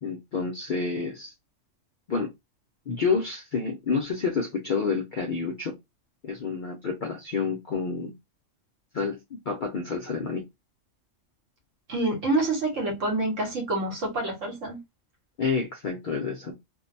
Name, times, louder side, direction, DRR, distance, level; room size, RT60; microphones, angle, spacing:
voice 1, 0.0-1.3 2.1-2.3 2.9-5.8 6.2-8.1 8.9-10.5 15.4-16.5, left 5 dB, 60° left, 0.5 m, -29 dB
voice 2, 11.9-14.8, right 2 dB, 75° right, 1.3 m, -27 dB
2.6 x 2.1 x 2.5 m
omnidirectional pair, 1.3 m